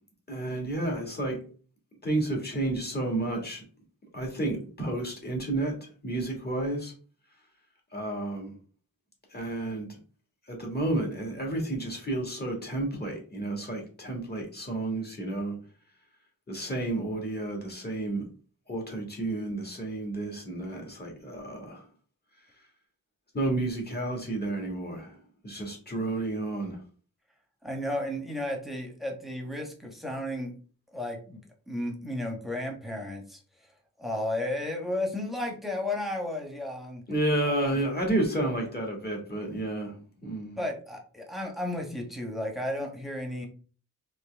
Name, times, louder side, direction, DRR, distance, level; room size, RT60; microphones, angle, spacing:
voice 1, 0.3-1.4 2.0-3.6 4.1-6.9 7.9-8.5 9.3-9.9 10.5-15.5 16.5-18.2 18.7-21.8 23.3-26.8 37.1-40.6, right 2 dB, 25° left, 0 dB, 1.8 m, -31 dB
voice 2, 27.6-30.6 30.9-31.4 31.7-33.4 34.0-37.0 37.5-37.8 40.6-43.5, left 1 dB, ahead, 1 dB, 1.2 m, -33 dB
4.4 x 3.4 x 3.4 m, 0.40 s
wide cardioid pair, 95°, 36 cm